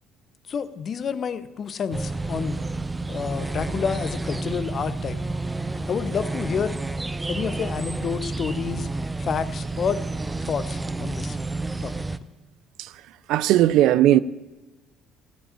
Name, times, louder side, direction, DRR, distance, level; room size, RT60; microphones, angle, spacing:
voice 1, 0.5-2.6 3.1-5.2 5.9-6.8 7.3-8.9 9.2-10.1 10.4-11.4 11.8-11.9, left 7 dB, 50° left, 0.7 m, -29 dB
sound 1, 1.9-12.2, right 2 dB, 15° right, 0.6 m, -30 dB
voice 2, 13.3-14.2, right 13 dB, 70° right, 0.4 m, -17 dB
14.5 x 4.9 x 8.6 m
hypercardioid pair, 60°, 0 cm